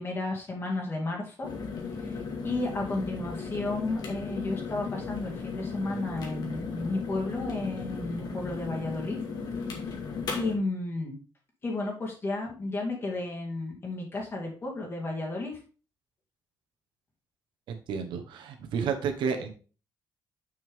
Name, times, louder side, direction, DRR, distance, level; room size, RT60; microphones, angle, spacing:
voice 1, 0.0-1.5 2.0-2.2 2.4-9.2 10.3-11.2 11.6-15.6, left 2 dB, 30° left, -1 dB, 2.3 m, -33 dB
sound 1, 1.4-10.5, left 4 dB, 60° left, 2.2 m, -36 dB
voice 2, 17.9-19.5, right 6 dB, 85° right, 5 dB, 1.4 m, -30 dB
6.7 x 6.2 x 3.7 m, 0.37 s
cardioid pair, 145°, 8 cm